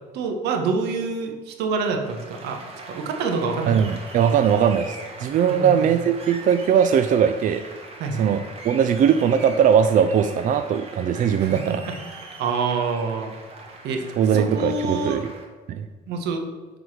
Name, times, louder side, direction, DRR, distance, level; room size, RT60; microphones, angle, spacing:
voice 1, 0.1-3.8 5.5-5.9 8.0-8.3 11.4-11.7 12.1-13.3 13.8-14.0 14.3-15.2 16.1-16.4, right 4 dB, 80° right, 4 dB, 1.3 m, -27 dB
Applause, 1.8-15.5, right 2 dB, 35° right, 1.7 m, -41 dB
voice 2, 3.7-7.6 8.2-11.8 14.2-15.3 15.7-15.9, right 8 dB, 50° right, 8 dB, 0.5 m, -20 dB
7.8 x 4.0 x 6.4 m, 1.3 s
cardioid pair, 110°, 17 cm